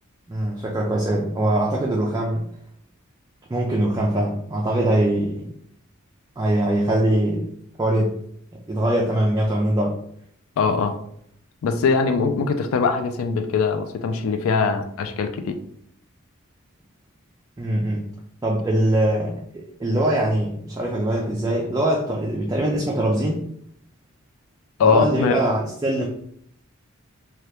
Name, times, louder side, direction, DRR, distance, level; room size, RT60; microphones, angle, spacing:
voice 1, 0.3-2.5 3.5-5.5 6.4-7.5 7.8-8.1 8.7-10.0 17.6-18.1 18.4-23.4 24.8-26.1, right 1 dB, 15° right, -2 dB, 0.4 m, -22 dB
voice 2, 10.6-10.9 11.6-15.6 24.8-25.4, left 5 dB, 70° left, 7 dB, 0.3 m, -21 dB
2.8 x 2.3 x 3.3 m, 0.67 s
head